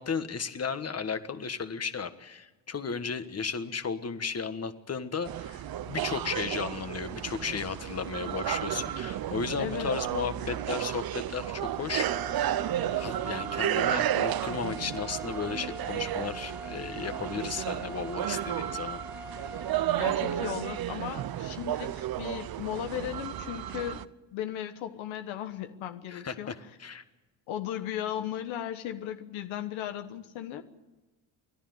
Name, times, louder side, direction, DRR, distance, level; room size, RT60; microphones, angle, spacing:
voice 1, 0.0-12.1 13.0-19.0 26.1-27.0, left 6 dB, 30° left, 10 dB, 1.5 m, -34 dB
sound 1, 5.3-24.1, right 12 dB, 50° right, 0.8 m, -32 dB
voice 2, 9.6-9.9 20.0-24.0 24.3-26.7 27.5-30.6, left 11 dB, 85° left, 8 dB, 1.3 m, -36 dB
sound 2, 11.9-20.9, equal, 5° right, 0.9 m, -44 dB
29.5 x 11.5 x 9.5 m, 1.2 s
cardioid pair, 100°, 46 cm